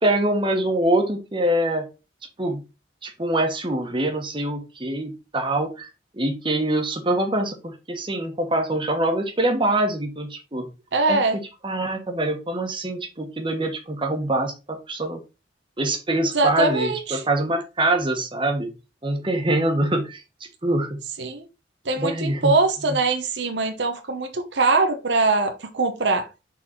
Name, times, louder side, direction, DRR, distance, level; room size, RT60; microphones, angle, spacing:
voice 1, 0.0-1.9 2.4-2.6 3.0-10.7 11.1-15.2 15.8-18.7 19.0-20.2 20.6-21.0 22.0-22.5 22.9-23.0, right 1 dB, 30° right, 1.3 m, -24 dB
voice 2, 10.9-11.4 16.3-17.2 21.2-21.5 21.8-26.3, right 3 dB, 70° right, 0.9 m, -22 dB
6.4 x 4.1 x 4.4 m
head